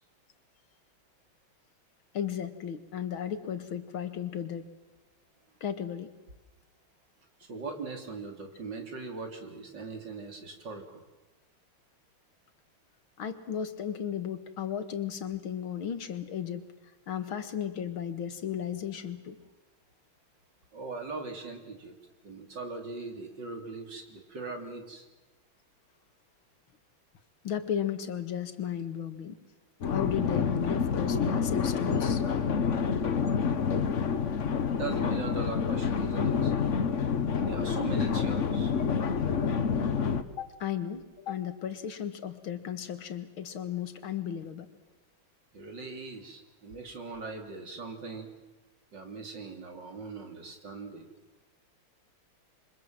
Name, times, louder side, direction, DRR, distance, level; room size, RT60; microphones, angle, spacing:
voice 1, 2.1-4.7 5.6-6.1 13.2-16.7 17.1-19.4 27.4-29.4 29.9-32.2 40.3-44.7, left 9 dB, 75° left, 10 dB, 2.5 m, -35 dB
voice 2, 7.4-11.0 20.7-22.0 22.2-25.1 34.8-36.5 37.4-38.7 45.5-48.3 48.9-51.1, right 3 dB, 55° right, 4 dB, 3.9 m, -40 dB
sound 1, 29.8-40.2, left 6 dB, 40° left, 1.3 m, -28 dB
27.5 x 24.5 x 7.7 m, 1.1 s
omnidirectional pair, 2.3 m